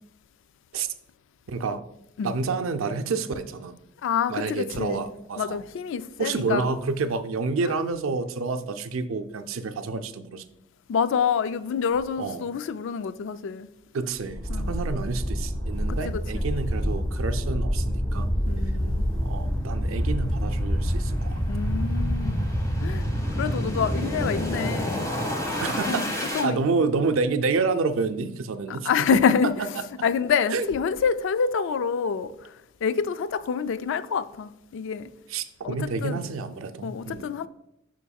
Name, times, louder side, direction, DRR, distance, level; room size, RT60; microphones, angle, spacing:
voice 1, 1.5-1.8 2.2-3.7 4.3-5.6 6.2-10.4 12.2-12.4 13.9-18.3 19.2-21.3 25.6-29.2 30.5-30.7 35.3-37.3, right 4 dB, 75° right, 0.5 m, -29 dB
voice 2, 4.0-5.0 5.4-6.7 7.6-7.8 10.9-13.7 14.5-14.7 15.9-16.4 18.5-19.0 21.5-22.5 22.8-23.1 23.4-25.1 25.9-26.0 26.3-26.6 28.7-29.7 30.0-32.5 32.8-35.1 35.6-36.2 36.8-37.5, left 6 dB, 65° left, 0.3 m, -27 dB
sound 1, 14.2-26.5, equal, 15° left, 1.1 m, -27 dB
7.0 x 5.9 x 2.3 m
head